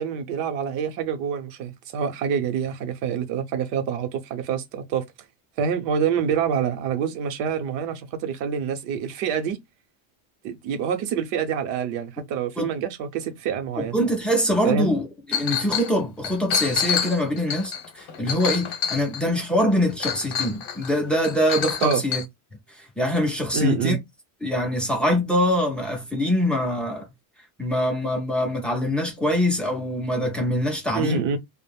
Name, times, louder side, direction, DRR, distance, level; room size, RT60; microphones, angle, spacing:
voice 1, 0.0-5.0 5.6-9.6 10.4-14.0 14.6-14.9 21.8-22.0 23.5-24.0 30.9-31.4, right 7 dB, 60° right, 0.8 m, -26 dB
voice 2, 13.8-22.2 22.8-24.0 24.4-27.1 27.6-31.2, equal, ahead, 0.4 m, -24 dB
Chink clink, 15.3-15.9 16.2-19.4 20.0-20.9 21.2-22.2, left 8 dB, 50° left, 0.8 m, -27 dB
2.4 x 2.1 x 3.3 m
cardioid pair, 150°, 50 cm